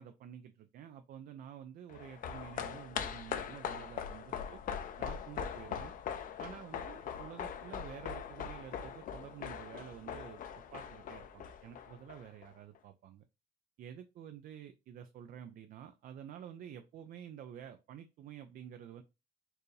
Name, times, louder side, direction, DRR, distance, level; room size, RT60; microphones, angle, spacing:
voice 1, 0.0-4.6 5.0-5.9 6.4-13.2 13.8-19.0, right 9 dB, 60° right, 8 dB, 0.5 m, -50 dB
sound 1, 1.9-12.5 12.7-12.8, left 8 dB, 55° left, 0.6 m, -41 dB
4.5 x 2.6 x 3.2 m, 0.27 s
cardioid pair, 110°, 17 cm